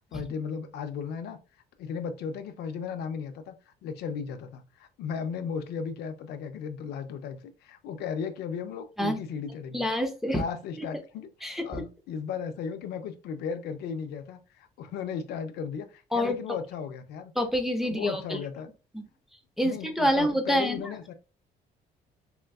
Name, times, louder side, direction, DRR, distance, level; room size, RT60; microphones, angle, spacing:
voice 1, 0.1-1.4 1.8-9.9 10.3-17.3 17.8-18.7 19.6-21.1, left 6 dB, 75° left, 0.5 m, -36 dB
voice 2, 9.7-10.4 10.8-10.9 11.4-11.8 16.1-16.4 17.4-18.4 18.9-19.0 19.6-20.8, equal, ahead, 0.5 m, -27 dB
3.6 x 2.3 x 2.3 m
cardioid pair, 110°, 17 cm